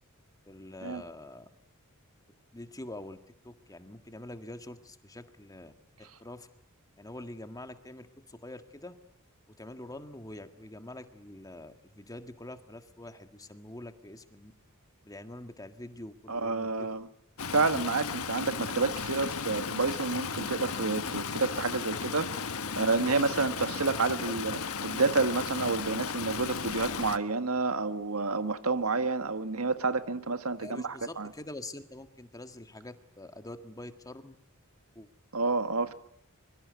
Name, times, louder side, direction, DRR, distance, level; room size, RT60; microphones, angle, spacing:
voice 1, 0.5-1.5 2.5-3.2 3.4-5.7 6.0-6.5 7.0-9.0 9.5-14.5 15.0-17.0 22.7-22.8 23.1-23.5 24.2-24.3 30.6-34.4 35.0-35.1, left 1 dB, 15° left, 8 dB, 1.8 m, -45 dB
voice 2, 16.3-17.1 17.5-22.5 22.8-31.3 35.3-35.9, right 3 dB, 80° right, 10 dB, 1.6 m, -29 dB
Stream, 17.4-27.2, left 5 dB, 85° left, 1.4 m, -35 dB
25.0 x 23.5 x 9.5 m, 0.74 s
head